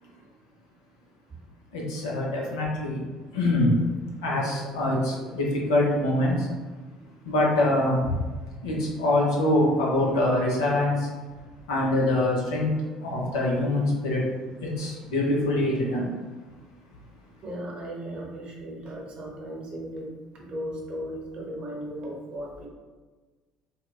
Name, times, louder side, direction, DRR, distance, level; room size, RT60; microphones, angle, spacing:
voice 1, 1.7-3.0 3.3-3.7 4.2-6.5 7.2-8.2 8.6-11.1 11.7-12.7 13.0-14.2 14.6-16.2, left 1 dB, 70° left, -2 dB, 0.6 m, -24 dB
voice 2, 17.4-22.7, equal, 40° right, -2 dB, 0.8 m, -36 dB
3.7 x 2.1 x 2.3 m, 1.3 s
figure-of-eight pair, 55°, 3 cm